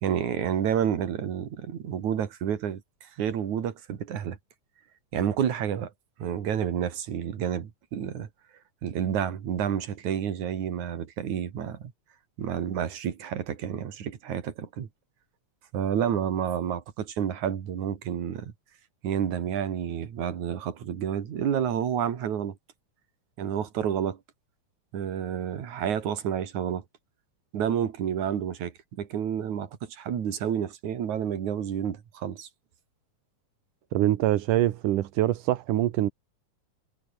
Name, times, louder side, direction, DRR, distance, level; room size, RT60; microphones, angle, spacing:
voice 1, 0.0-4.4 5.1-5.9 6.2-8.3 8.8-11.9 12.4-14.9 15.7-18.5 19.0-22.6 23.4-24.2 24.9-26.8 27.5-32.5, right 9 dB, 65° right, 3.6 m, -29 dB
voice 2, 33.9-36.1, right 14 dB, 85° right, 2.7 m, -24 dB
omnidirectional pair, 3.6 m